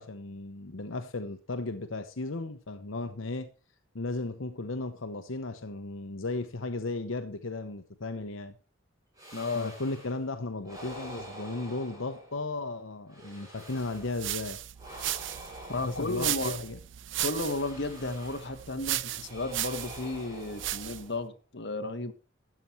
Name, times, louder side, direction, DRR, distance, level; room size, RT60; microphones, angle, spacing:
voice 1, 0.0-3.5 3.9-8.5 9.5-14.6 15.8-16.8, left 2 dB, 80° left, 1.0 m, -35 dB
sound 1, 9.2-10.2 10.6-12.6 13.1-14.3 14.8-16.8 17.3-18.7 19.2-21.3, right 1 dB, 15° right, 6.7 m, -47 dB
voice 2, 9.3-9.7 15.7-16.6 17.2-22.1, left 2 dB, 55° left, 1.5 m, -33 dB
sound 2, 13.8-21.1, right 13 dB, 65° right, 0.6 m, -36 dB
13.5 x 8.7 x 4.6 m
head